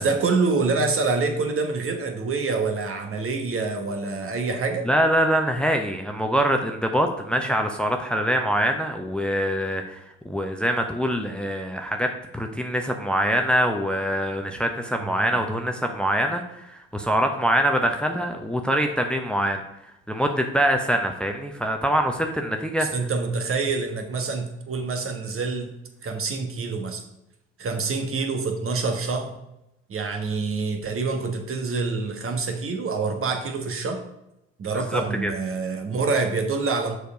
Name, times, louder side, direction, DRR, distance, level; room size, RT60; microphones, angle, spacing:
voice 1, 0.0-4.9 15.0-15.4 22.8-25.7 26.0-27.0 27.6-29.3 29.9-34.0 34.6-37.0, right 4 dB, 40° right, 5 dB, 1.4 m, -26 dB
voice 2, 4.8-10.0 10.2-19.6 20.1-22.9 34.7-35.3, equal, 5° left, 4 dB, 0.8 m, -24 dB
6.8 x 4.7 x 5.1 m, 0.87 s
hypercardioid pair, 55°, 32 cm